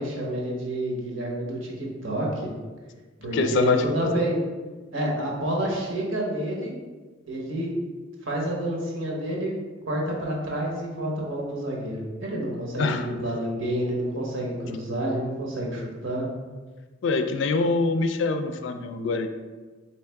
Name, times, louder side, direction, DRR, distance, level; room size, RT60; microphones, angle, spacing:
voice 1, 0.0-2.3 3.2-4.4 4.9-6.7 7.3-7.7 8.3-9.5 9.9-16.3, right 1 dB, 80° right, -2 dB, 1.0 m, -29 dB
voice 2, 3.3-4.1 12.8-13.1 17.0-19.3, left 4 dB, 65° left, 7 dB, 0.3 m, -24 dB
3.5 x 3.2 x 3.4 m, 1.3 s
head